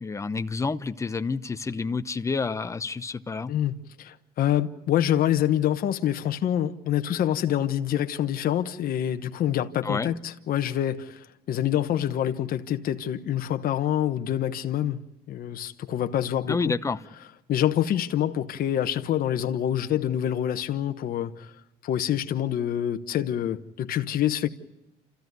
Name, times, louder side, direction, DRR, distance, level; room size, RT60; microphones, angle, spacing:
voice 1, 0.0-3.5 9.8-10.1 16.5-17.0, left 4 dB, 20° left, 0.8 m, -29 dB
voice 2, 3.5-15.0 15.3-16.7 17.5-21.5 21.8-24.5, left 11 dB, 60° left, 1.1 m, -26 dB
29.5 x 14.5 x 9.4 m
cardioid pair, 110°, 17 cm